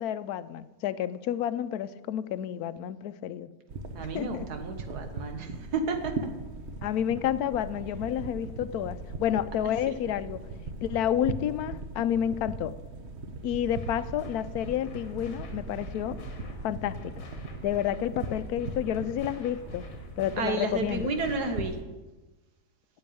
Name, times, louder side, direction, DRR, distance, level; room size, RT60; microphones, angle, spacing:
voice 1, 0.0-3.5 4.0-4.5 6.8-10.4 10.8-12.8 13.4-16.2 16.6-17.2 17.6-19.9 20.2-21.1, left 10 dB, 80° left, 15 dB, 1.1 m, -30 dB
sound 1, 3.7-21.8, right 3 dB, 50° right, 1.1 m, -39 dB
voice 2, 3.9-6.3 9.9-10.0 20.4-21.8, right 3 dB, 85° right, 7 dB, 1.8 m, -32 dB
sound 2, 13.7-21.7, left 3 dB, 60° left, 1.8 m, -46 dB
8.8 x 7.8 x 9.1 m, 1.1 s
omnidirectional pair, 1.6 m